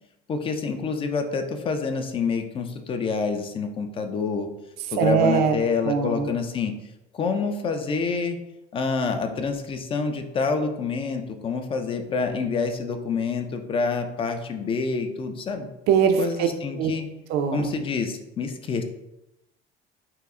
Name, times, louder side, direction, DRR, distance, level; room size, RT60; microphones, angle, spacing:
voice 1, 0.3-4.5 4.9-6.7 7.1-8.4 8.7-15.7 16.2-17.1 17.5-18.8, left 4 dB, 30° left, 6 dB, 0.5 m, -27 dB
voice 2, 5.0-5.5 5.9-6.3 15.9-16.5 16.8-16.9 17.3-17.7, right 7 dB, 60° right, 6 dB, 0.5 m, -21 dB
5.6 x 2.0 x 3.6 m, 0.91 s
cardioid pair, 135°, 19 cm